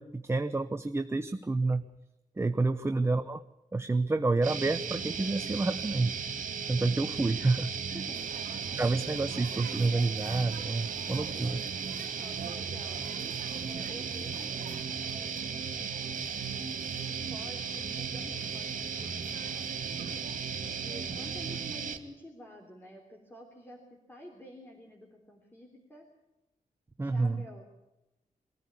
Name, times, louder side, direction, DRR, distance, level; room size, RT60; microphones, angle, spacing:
voice 1, 0.0-1.9 2.4-3.4 3.7-6.2 6.7-7.7 8.7-11.6 27.0-27.4, right 3 dB, 20° right, 8 dB, 0.8 m, -29 dB
sound 1, 4.4-22.0, right 6 dB, 65° right, 2.4 m, -36 dB
voice 2, 7.9-8.3 12.1-13.1 13.6-14.6 15.1-20.2 20.8-26.0 27.0-27.6, left 1 dB, 15° left, 1 dB, 3.4 m, -50 dB
sound 2, 8.1-21.7, right 7 dB, 90° right, 1.4 m, -49 dB
23.5 x 15.0 x 8.4 m, 0.95 s
wide cardioid pair, 150°, 14 cm